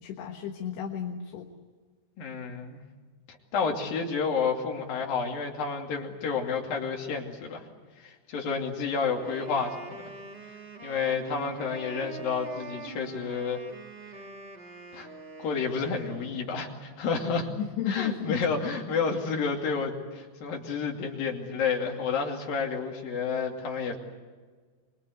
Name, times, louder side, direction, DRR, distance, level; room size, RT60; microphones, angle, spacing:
voice 1, 0.0-1.5 17.6-18.4, left 9 dB, 75° left, 2 dB, 3.5 m, -33 dB
voice 2, 2.2-2.8 3.5-7.6 8.0-10.0 10.8-13.6 14.9-15.1 15.4-17.5 17.9-24.0, left 5 dB, 60° left, 1 dB, 4.2 m, -30 dB
Wind instrument woodwind instrument, 9.0-16.6, right 3 dB, 65° right, 0.5 m, -44 dB
26.0 x 23.0 x 8.1 m, 1.5 s
omnidirectional pair, 5.0 m